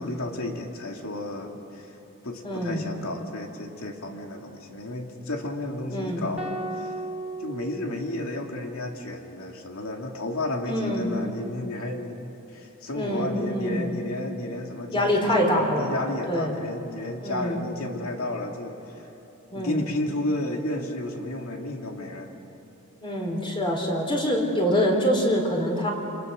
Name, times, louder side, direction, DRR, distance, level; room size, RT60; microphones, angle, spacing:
voice 1, 0.0-1.9 2.2-6.9 7.4-12.2 12.5-19.1 19.5-22.3, left 1 dB, 80° left, 2 dB, 2.6 m, -32 dB
voice 2, 2.4-2.9 5.9-6.3 10.7-11.2 12.9-13.9 14.9-15.9 16.3-16.6 17.2-17.6 19.5-19.9 23.0-25.9, equal, 25° left, 1 dB, 4.2 m, -25 dB
sound 1, 6.4-8.7, right 2 dB, 10° right, 2.7 m, -36 dB
29.5 x 27.0 x 6.6 m, 2.9 s
head